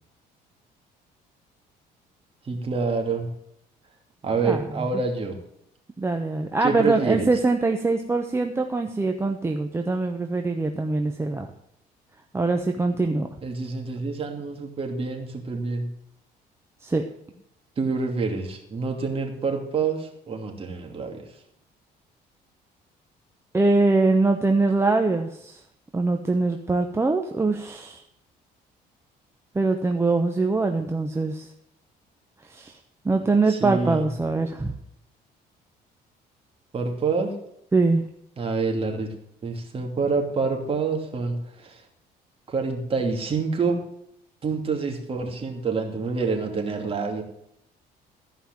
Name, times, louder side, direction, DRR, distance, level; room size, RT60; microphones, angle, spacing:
voice 1, 2.4-3.3 4.2-5.4 6.6-7.3 13.4-15.9 17.8-21.2 33.5-34.1 36.7-37.3 38.4-39.1 39.4-41.8 42.5-43.8 44.4-47.2, right 4 dB, 35° right, 2 dB, 2.7 m, -27 dB
voice 2, 6.0-11.5 12.3-13.3 16.8-17.0 23.5-25.6 25.9-28.0 29.5-31.5 32.5-32.7 33.0-34.7 37.7-38.1, right 3 dB, 15° right, 4 dB, 0.9 m, -23 dB
14.0 x 5.6 x 7.5 m, 0.75 s
cardioid pair, 110°, 17 cm